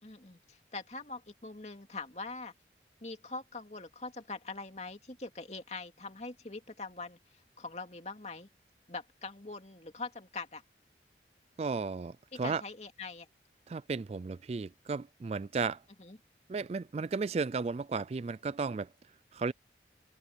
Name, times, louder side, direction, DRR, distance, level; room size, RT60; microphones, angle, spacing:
voice 1, 0.0-2.5 3.0-8.5 8.9-10.6 12.3-13.3 16.0-16.2, left 3 dB, 40° left, 2.5 m, -43 dB
voice 2, 11.6-12.6 13.7-15.8 16.5-18.9 19.3-19.5, right 4 dB, 35° right, 0.3 m, -34 dB
open air
head